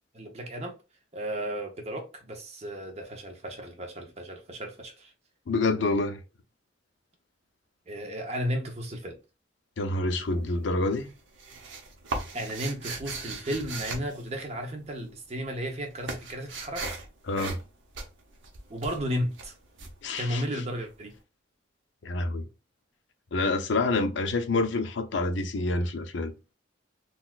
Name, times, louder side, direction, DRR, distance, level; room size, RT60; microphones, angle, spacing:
voice 1, 0.1-0.8 1.1-5.1 7.9-9.2 12.3-16.9 18.7-19.5 20.2-21.1, equal, 35° right, 0.8 m, -34 dB
voice 2, 5.5-6.2 9.8-11.1 17.3-17.6 20.0-20.4 22.0-22.5 23.3-26.3, left 2 dB, 70° left, 0.5 m, -27 dB
sound 1, 10.1-10.7 11.0-15.0 15.3-20.9, right 3 dB, 80° right, 0.8 m, -38 dB
3.9 x 2.3 x 2.3 m
head